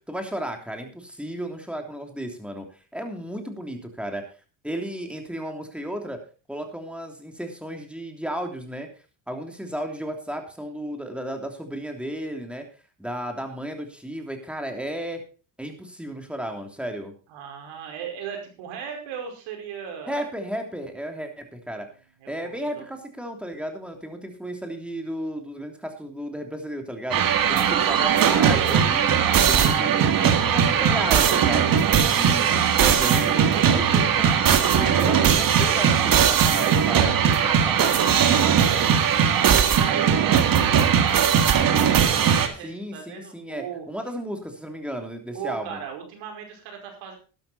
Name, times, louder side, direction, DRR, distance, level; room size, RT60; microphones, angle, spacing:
voice 1, 0.0-2.7 2.9-4.2 4.6-6.2 6.5-8.9 9.3-12.6 13.0-15.2 15.6-17.1 20.1-21.9 22.3-29.2 29.5-31.7 32.1-39.0 42.6-45.8, equal, ahead, 4 dB, 3.1 m, -34 dB
voice 2, 17.3-20.2 22.2-22.9 29.2-32.6 38.2-38.8 39.2-43.8 45.3-47.2, right 7 dB, 85° right, 3 dB, 5.1 m, -37 dB
sound 1, 27.1-42.5, right 8 dB, 50° right, 1.8 m, -19 dB
12.0 x 12.0 x 4.2 m, 0.36 s
cardioid pair, 100°, 45 cm